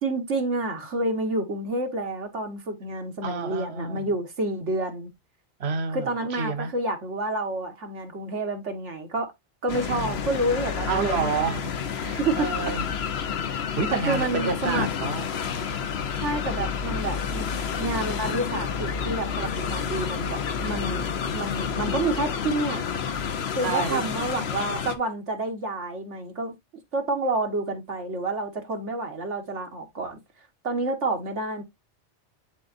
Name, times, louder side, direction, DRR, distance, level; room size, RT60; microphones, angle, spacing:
voice 1, 0.0-5.1 5.9-9.3 9.6-11.6 12.2-12.5 13.9-14.9 16.2-17.5 17.8-21.1 21.3-22.8 23.6-26.5 26.9-30.2 30.6-31.6, right 2 dB, 85° right, 1.8 m, -29 dB
voice 2, 3.2-4.1 5.6-6.7 9.9-10.2 10.8-11.7 12.0-12.8 13.8-15.3 20.7-20.9 23.6-24.0, right 5 dB, 65° right, 1.3 m, -29 dB
sound 1, 9.7-25.0, left 7 dB, 65° left, 1.0 m, -29 dB
10.0 x 3.9 x 2.6 m
omnidirectional pair, 1.2 m